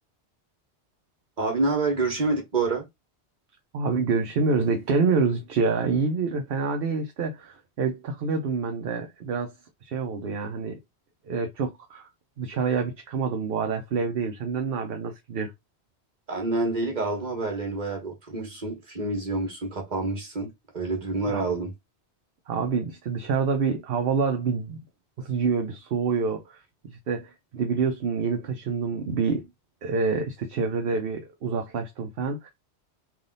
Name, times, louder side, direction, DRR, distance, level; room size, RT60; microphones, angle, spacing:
voice 1, 1.4-2.8 16.3-21.7, right 3 dB, 40° right, 1.6 m, -27 dB
voice 2, 3.7-9.5 9.8-10.8 11.3-12.1 12.4-15.5 21.3-21.4 22.5-24.8 25.2-29.5 29.8-32.5, right 5 dB, 60° right, 0.9 m, -27 dB
3.6 x 2.4 x 3.8 m
omnidirectional pair, 1.1 m